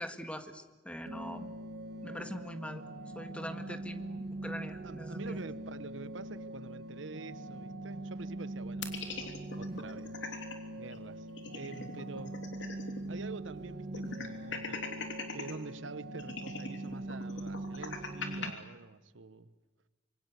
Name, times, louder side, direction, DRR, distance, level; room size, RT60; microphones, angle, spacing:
voice 1, 0.0-1.5 2.0-2.8 3.2-5.4, equal, 5° left, 7 dB, 1.7 m, -42 dB
sound 1, 1.1-18.5, right 1 dB, 60° right, 2.1 m, -42 dB
voice 2, 4.8-9.3 9.6-10.4 10.7-11.3 11.5-12.3 13.1-14.9 15.3-19.5, right 3 dB, 85° right, 14 dB, 1.1 m, -46 dB
sound 2, 8.8-10.5 10.9-11.0 11.3-13.1 13.3-13.4 13.9-15.5 16.2-18.5, left 4 dB, 70° left, 3.3 m, -41 dB
26.0 x 24.0 x 8.2 m, 1.2 s
head